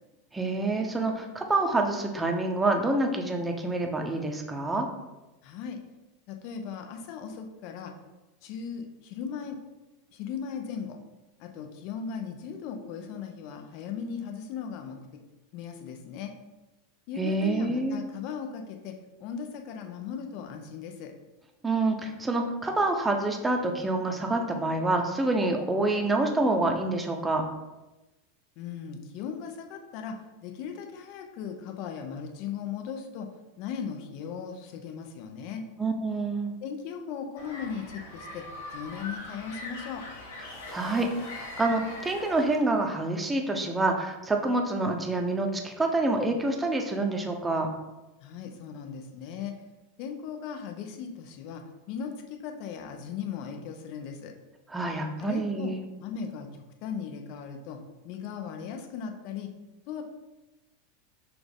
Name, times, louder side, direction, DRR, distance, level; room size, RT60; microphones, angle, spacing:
voice 1, 0.3-4.9 17.2-18.0 21.6-27.4 35.8-36.5 40.7-47.7 54.7-55.8, right 2 dB, 15° right, 3 dB, 0.7 m, -27 dB
voice 2, 5.4-5.8 6.3-7.9 8.4-9.6 10.1-11.0 11.4-15.2 15.5-16.3 17.1-21.1 28.6-30.2 30.4-33.3 33.6-35.6 36.6-40.1 48.2-49.5 50.0-54.3 55.2-55.7 56.0-59.5 59.9-60.0, left 7 dB, 55° left, 4 dB, 0.6 m, -38 dB
sound 1, 37.4-42.9, left 2 dB, 80° left, 1.0 m, -42 dB
6.0 x 2.5 x 3.5 m, 1.1 s
hypercardioid pair, 95°, 0 cm